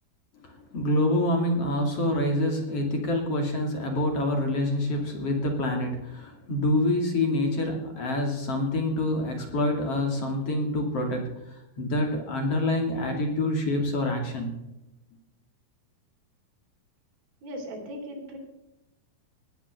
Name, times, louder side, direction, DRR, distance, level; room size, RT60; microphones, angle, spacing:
voice 1, 0.4-14.5, left 1 dB, 45° left, 2 dB, 3.4 m, -26 dB
voice 2, 17.4-18.4, equal, 80° right, 0 dB, 5.0 m, -38 dB
19.5 x 9.8 x 6.6 m, 0.93 s
omnidirectional pair, 4.3 m